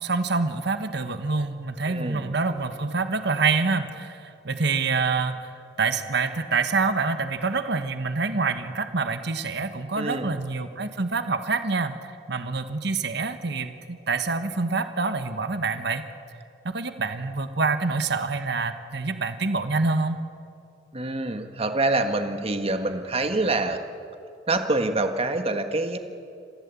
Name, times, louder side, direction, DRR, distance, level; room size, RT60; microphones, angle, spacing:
voice 1, 0.0-5.5 5.8-16.0 16.6-20.2, right 4 dB, 65° right, 9 dB, 1.4 m, -26 dB
voice 2, 1.8-2.3 10.0-10.3 20.9-23.8 24.5-26.0, right 2 dB, 35° right, 7 dB, 1.6 m, -26 dB
28.0 x 15.5 x 8.4 m, 2.5 s
head